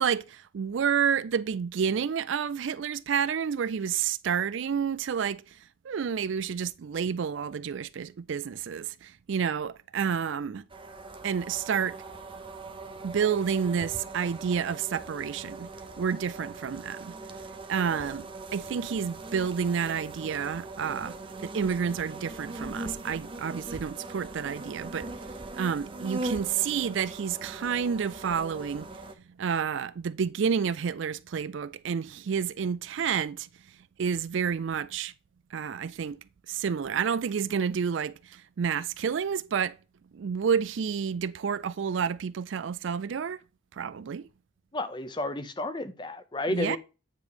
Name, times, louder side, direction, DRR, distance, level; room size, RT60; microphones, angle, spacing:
voice 1, 0.0-5.6 5.8-10.6 11.2-12.0 13.0-15.7 16.0-17.2 17.7-21.2 21.4-25.1 25.6-28.9 29.4-33.5 34.0-35.1 35.5-36.2 36.5-39.8 40.1-43.4 43.7-44.3 46.5-46.8, right 7 dB, 65° right, 0.4 m, -29 dB
sound 1, 10.7-29.1, right 2 dB, 25° right, 0.7 m, -41 dB
voice 2, 44.7-46.8, left 2 dB, 25° left, 0.6 m, -32 dB
9.3 x 3.2 x 4.9 m
head